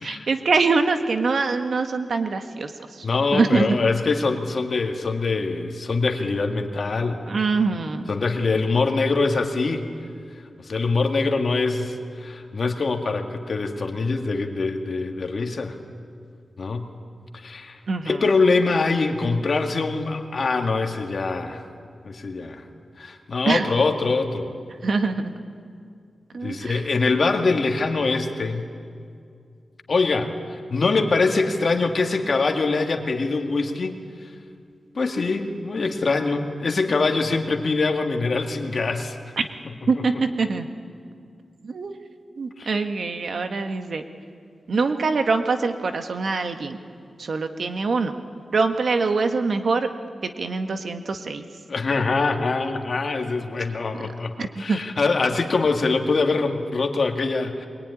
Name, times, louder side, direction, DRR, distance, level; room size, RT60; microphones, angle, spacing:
voice 1, 0.0-2.7 3.0-3.1 3.3-3.8 7.3-8.1 17.9-18.2 23.4-23.7 24.8-25.3 26.3-26.8 39.4-39.5 39.9-40.7 41.6-42.0 42.4-44.0 44.7-46.8 47.2-48.1 48.5-49.9 50.2-51.4 53.9-54.0 54.4-54.8, right 4 dB, 65° right, 7 dB, 1.6 m, -24 dB
voice 2, 3.0-7.2 8.1-9.9 10.6-15.8 16.6-16.9 17.4-17.8 18.1-21.6 22.0-22.6 23.0-24.5 26.4-28.7 29.9-30.3 30.7-34.0 35.0-39.2 42.6-42.8 51.7-57.7, left 3 dB, 55° left, 4 dB, 2.1 m, -23 dB
22.5 x 22.0 x 9.8 m, 2.3 s
wide cardioid pair, 105°, 0 cm